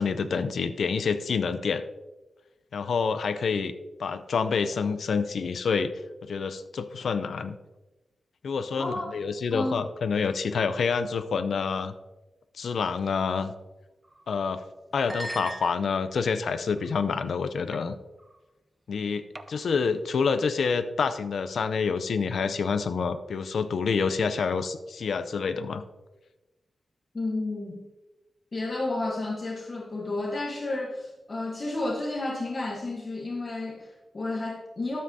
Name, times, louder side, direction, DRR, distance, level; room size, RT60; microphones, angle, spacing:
voice 1, 0.0-1.8 2.7-3.7 4.0-5.9 6.2-7.6 8.4-11.9 12.6-13.5 14.3-14.6 14.9-17.9 18.9-25.8, left 5 dB, 80° left, 10 dB, 0.5 m, -27 dB
voice 2, 8.8-9.1 9.5-9.9 27.1-27.9 28.5-35.0, left 2 dB, 40° left, -1 dB, 1.1 m, -31 dB
sound 1, 14.0-14.3 15.0-16.2 16.8-17.1 17.7-17.9 18.2-18.4 19.3-19.8, right 1 dB, 15° right, 0.5 m, -40 dB
13.0 x 7.4 x 2.7 m, 1.1 s
wide cardioid pair, 105°, 0 cm